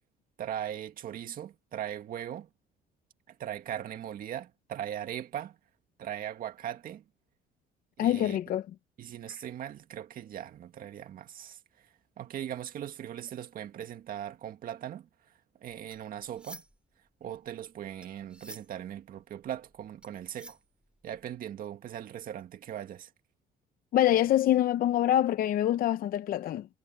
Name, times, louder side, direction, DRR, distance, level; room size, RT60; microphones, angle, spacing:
voice 1, 0.4-2.5 3.4-5.6 6.0-7.0 8.0-8.4 9.0-11.6 12.2-15.1 15.6-16.6 17.2-20.6 21.0-23.1, right 10 dB, 55° right, 2.0 m, -39 dB
voice 2, 8.0-8.6 23.9-26.7, left 12 dB, 60° left, 0.7 m, -25 dB
sound 1, 15.9-16.9 17.3-21.3, equal, 5° right, 2.6 m, -51 dB
cardioid pair, 110°, 17 cm